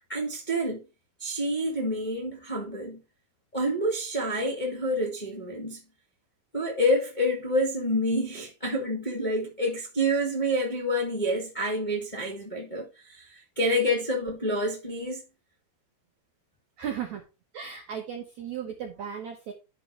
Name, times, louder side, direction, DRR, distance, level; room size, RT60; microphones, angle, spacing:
voice 1, 0.1-0.8 1.2-3.0 3.5-5.8 6.5-13.2 13.5-15.2, equal, 20° left, 1.2 m, -28 dB
voice 2, 16.8-17.2 17.5-19.5, right 8 dB, 90° right, 1.6 m, -35 dB
12.5 x 5.6 x 3.3 m
omnidirectional pair, 5.2 m